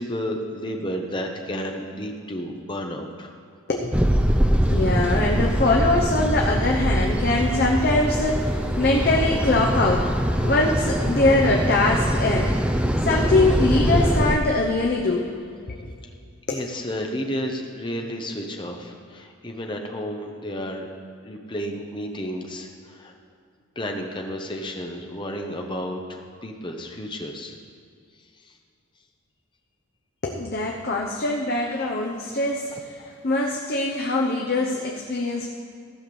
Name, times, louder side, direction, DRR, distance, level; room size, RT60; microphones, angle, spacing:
voice 1, 0.0-3.3 16.5-20.9 21.2-23.1 23.7-27.5 28.4-28.5 32.7-32.8, equal, 20° left, 2 dB, 1.0 m, -32 dB
voice 2, 3.7-4.1 4.7-10.1 10.4-12.6 13.0-15.3 15.7-15.9 16.5-16.6 30.2-35.5, left 2 dB, 45° left, 0 dB, 0.8 m, -23 dB
sound 1, 3.9-14.4, equal, 5° right, 0.4 m, -23 dB
14.5 x 5.8 x 7.0 m, 2.3 s
head